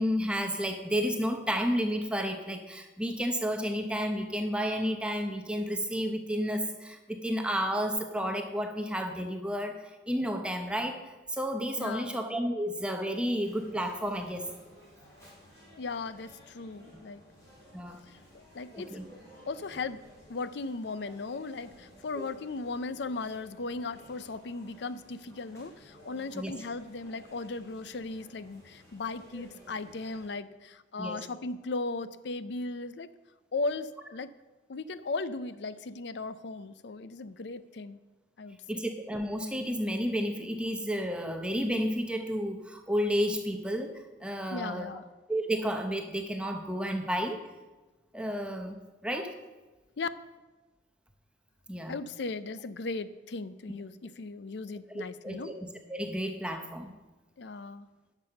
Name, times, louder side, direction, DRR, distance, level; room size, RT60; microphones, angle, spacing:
voice 1, 0.0-14.5 17.7-18.0 18.7-19.0 22.2-22.3 26.3-26.5 31.0-31.2 38.7-43.9 44.2-45.0 45.3-47.4 48.1-49.3 51.7-52.0 54.9-55.5 55.9-56.9, equal, 5° right, 5 dB, 0.8 m, -31 dB
voice 2, 11.8-12.2 15.8-17.2 18.1-18.2 18.5-18.9 19.5-20.0 20.3-33.1 33.5-34.3 34.7-38.0 38.4-38.8 44.5-45.0 50.0-50.1 51.9-55.5 57.4-57.9, left 3 dB, 65° left, 14 dB, 0.5 m, -37 dB
sound 1, 13.4-30.3, equal, 15° left, 4.0 m, -55 dB
10.5 x 6.2 x 6.6 m, 1.2 s
head